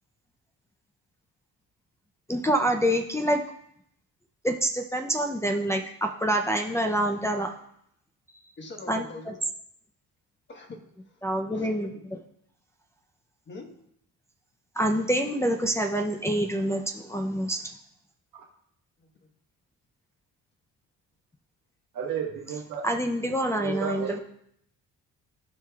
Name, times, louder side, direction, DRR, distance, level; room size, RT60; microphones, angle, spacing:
voice 1, 2.3-3.4 4.4-7.5 8.9-9.0 11.2-11.9 14.8-17.6 22.8-24.2, right 1 dB, 10° left, 1 dB, 0.5 m, -26 dB
voice 2, 8.6-9.4 10.5-12.0 13.5-13.7 19.0-19.3, left 2 dB, 35° left, 3 dB, 1.3 m, -44 dB
voice 3, 21.9-22.9 23.4-24.2, right 6 dB, 85° right, 0 dB, 1.6 m, -33 dB
14.0 x 5.0 x 2.3 m, 0.72 s
cardioid pair, 110°, 32 cm